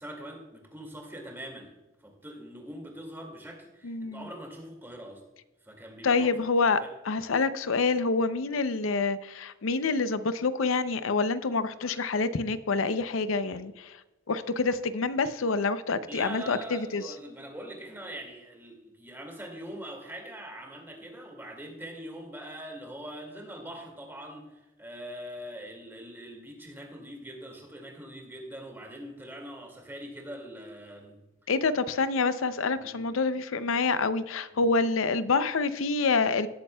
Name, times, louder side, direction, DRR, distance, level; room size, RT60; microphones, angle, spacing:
voice 1, 0.0-1.7 2.0-5.2 5.6-6.4 6.8-6.9 8.3-8.4 13.5-13.7 16.1-31.5 32.7-33.0 34.5-34.7, right 1 dB, 10° right, 1 dB, 2.2 m, -43 dB
voice 2, 3.8-4.2 6.0-6.8 7.1-13.7 14.3-17.0 31.5-36.5, left 4 dB, 85° left, 13 dB, 0.6 m, -27 dB
18.0 x 8.5 x 2.3 m, 1.0 s
head